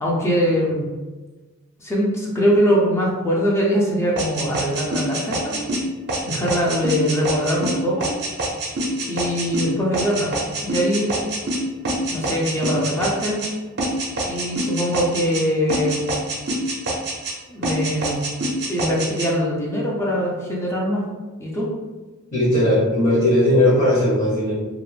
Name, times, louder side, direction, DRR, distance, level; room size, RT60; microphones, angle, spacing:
voice 1, 0.0-0.8 1.8-5.6 6.2-8.1 9.1-10.3 10.6-11.1 12.1-13.4 14.2-16.1 17.5-18.2 18.7-21.0 21.4-21.7, equal, 10° left, -4 dB, 0.5 m, -22 dB
sound 1, 4.2-13.5 13.8-15.4 15.7-17.4 17.6-19.3, right 1 dB, 50° right, 0.5 m, -25 dB
voice 2, 22.3-24.5, left 1 dB, 40° left, -9 dB, 0.8 m, -17 dB
2.4 x 2.0 x 3.2 m, 1.2 s
head